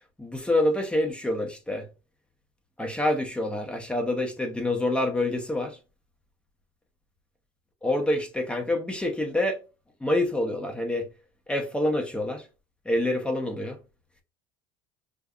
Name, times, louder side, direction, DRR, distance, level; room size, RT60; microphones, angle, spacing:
voice 1, 0.2-1.9 2.8-5.8 7.8-9.6 10.0-11.1 11.5-12.5 12.8-13.8, left 1 dB, 5° left, 0.8 m, -27 dB
5.2 x 2.1 x 2.4 m
supercardioid pair, 105°, 15 cm